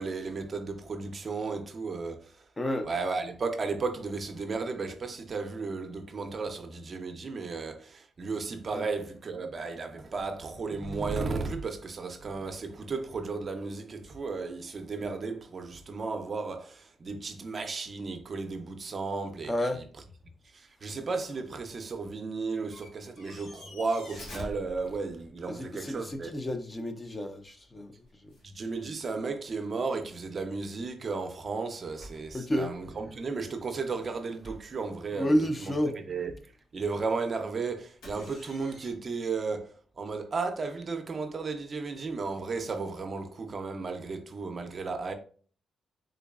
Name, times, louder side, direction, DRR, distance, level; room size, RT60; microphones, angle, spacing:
voice 1, 0.0-2.5 2.8-19.9 20.5-26.4 28.4-45.1, right 4 dB, 45° right, 0.5 m, -34 dB
voice 2, 2.6-2.9 8.7-8.8 19.5-19.8 25.5-27.9 32.3-32.7 35.1-35.9, equal, 20° left, 0.5 m, -30 dB
sound 1, 21.9-22.0 22.5-25.5 26.0-26.5 27.7-27.8 28.0-28.6 29.0-29.1 29.5-29.6 31.8-33.0 34.0-34.1 34.4-34.8 38.0-38.9, equal, 90° left, 1.3 m, -47 dB
3.7 x 3.1 x 2.3 m
cardioid pair, 90°, 0 cm